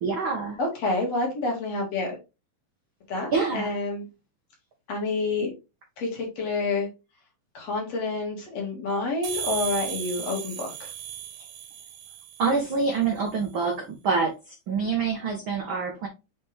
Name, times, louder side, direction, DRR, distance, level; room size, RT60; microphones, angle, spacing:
voice 1, 0.0-0.6 3.3-3.7 12.4-16.1, right 4 dB, 75° right, 2 dB, 1.1 m, -26 dB
voice 2, 0.6-2.2 3.1-4.1 4.9-5.5 6.0-6.9 7.5-10.9, left 3 dB, 55° left, 0 dB, 2.8 m, -28 dB
sound 1, 9.2-12.8, right 10 dB, 60° right, 2.1 m, -36 dB
6.6 x 4.3 x 3.3 m, 0.27 s
omnidirectional pair, 3.9 m